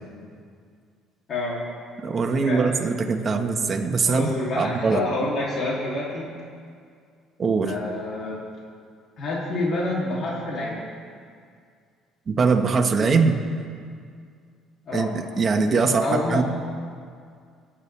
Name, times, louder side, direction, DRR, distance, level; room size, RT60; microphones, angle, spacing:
voice 1, 1.3-1.6 2.2-2.7 4.0-6.3 7.7-8.4 9.2-10.8 14.8-15.1 16.0-16.4, left 2 dB, 50° left, -5 dB, 3.0 m, -28 dB
voice 2, 2.0-5.0 7.4-7.7 12.3-13.4 14.9-16.4, right 4 dB, 35° right, 3 dB, 1.5 m, -22 dB
24.0 x 10.0 x 3.5 m, 2.2 s
cardioid pair, 100°, 0 cm